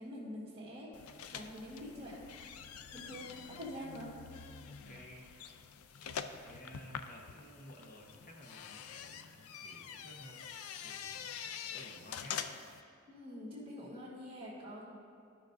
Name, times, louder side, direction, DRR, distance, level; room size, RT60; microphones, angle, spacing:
voice 1, 0.0-2.2 2.9-4.1 13.1-14.9, equal, 25° right, -10 dB, 1.6 m, -46 dB
sound 1, 0.9-12.8, left 7 dB, 85° left, 0.4 m, -46 dB
voice 2, 4.8-5.6 6.4-12.5, equal, 40° left, 0 dB, 1.1 m, -55 dB
14.5 x 5.9 x 2.6 m, 2.5 s
head